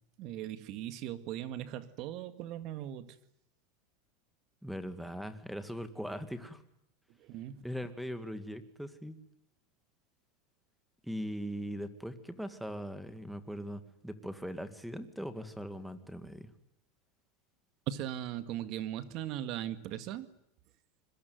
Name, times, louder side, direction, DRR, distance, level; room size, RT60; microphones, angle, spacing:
voice 1, 0.2-3.2 7.2-7.6 17.9-20.3, right 12 dB, 45° right, 11 dB, 1.9 m, -39 dB
voice 2, 4.6-6.6 7.6-9.2 11.0-16.5, equal, ahead, 10 dB, 2.0 m, -40 dB
26.0 x 22.5 x 9.4 m, 0.76 s
supercardioid pair, 150°, 0 cm